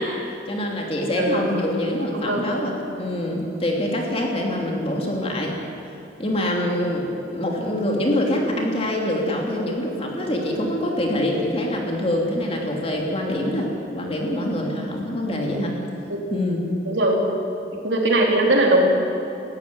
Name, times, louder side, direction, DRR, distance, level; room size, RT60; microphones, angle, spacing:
voice 1, 0.0-5.6 5.9-7.1 7.3-15.7 16.3-16.6, left 1 dB, 30° left, 0 dB, 3.0 m, -25 dB
voice 2, 1.2-1.5 2.0-2.7 15.5-15.6 16.1-16.2 16.8-17.3 17.8-18.8, right 2 dB, 70° right, 0 dB, 3.7 m, -21 dB
19.0 x 15.0 x 9.7 m, 2.8 s
head